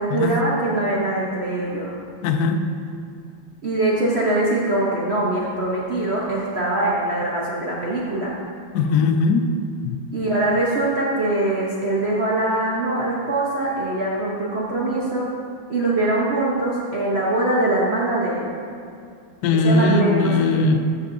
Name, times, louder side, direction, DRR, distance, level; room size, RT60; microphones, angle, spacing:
voice 1, 0.0-1.9 3.6-8.3 10.1-15.3 15.7-18.5 19.6-20.3, right 2 dB, 65° right, -5 dB, 0.6 m, -22 dB
voice 2, 2.2-2.6 8.7-9.5 9.8-10.0 19.4-21.0, left 3 dB, 85° left, 6 dB, 0.8 m, -19 dB
14.0 x 5.7 x 2.6 m, 2.4 s
omnidirectional pair, 2.3 m